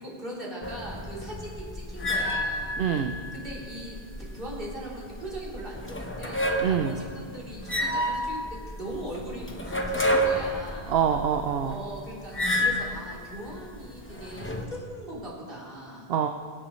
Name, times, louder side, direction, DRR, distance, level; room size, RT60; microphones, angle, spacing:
voice 1, 0.0-2.8 3.3-4.0 4.3-11.0 11.6-12.3 12.6-16.1, right 1 dB, 60° right, -6 dB, 3.7 m, -39 dB
sound 1, 0.6-14.7, equal, 15° left, 0.9 m, -31 dB
voice 2, 2.8-3.2 6.6-7.0 10.9-11.8 16.1-16.3, right 8 dB, 75° right, 6 dB, 0.9 m, -25 dB
23.5 x 11.0 x 3.1 m, 2.1 s
omnidirectional pair, 1.1 m